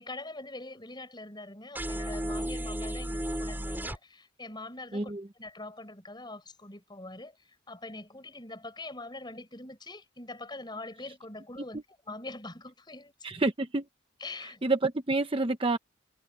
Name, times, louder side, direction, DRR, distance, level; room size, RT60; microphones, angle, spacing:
voice 1, 0.0-13.1 14.2-14.6, left 2 dB, 25° left, 6.5 m, -43 dB
sound 1, 1.7-4.0, right 1 dB, 10° right, 4.6 m, -33 dB
voice 2, 4.9-5.2 13.2-13.8 14.6-15.8, right 2 dB, 30° right, 0.8 m, -28 dB
head